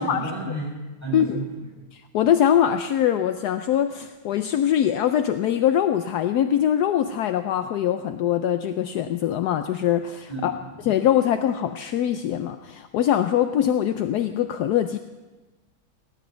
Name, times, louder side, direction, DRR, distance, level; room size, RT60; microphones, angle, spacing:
voice 1, 0.0-1.8 10.3-10.8, right 2 dB, 5° left, -2 dB, 7.0 m, -33 dB
voice 2, 1.9-10.5 10.8-15.0, left 10 dB, 70° left, 9 dB, 1.0 m, -23 dB
17.5 x 9.3 x 8.0 m, 1.2 s
omnidirectional pair, 2.2 m